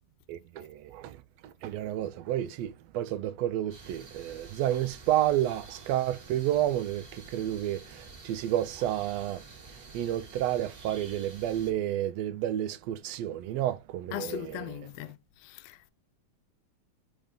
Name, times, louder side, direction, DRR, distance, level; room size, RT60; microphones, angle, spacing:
voice 1, 0.3-1.2 1.4-9.4 9.9-14.8, right 12 dB, 80° right, 1.6 m, -30 dB
sound 1, 3.7-11.7, right 4 dB, 35° right, 1.8 m, -49 dB
voice 2, 14.1-15.2 15.4-15.9, left 14 dB, 80° left, 1.5 m, -38 dB
5.2 x 5.0 x 3.6 m
omnidirectional pair, 3.3 m